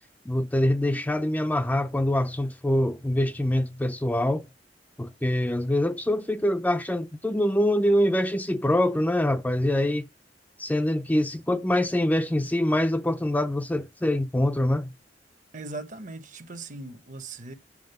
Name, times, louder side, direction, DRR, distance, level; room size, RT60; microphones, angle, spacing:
voice 1, 0.3-4.5 5.0-10.0 10.6-14.9, left 1 dB, 10° left, 0.4 m, -24 dB
voice 2, 15.5-17.5, right 3 dB, 45° right, 1.0 m, -39 dB
8.6 x 3.7 x 6.6 m
head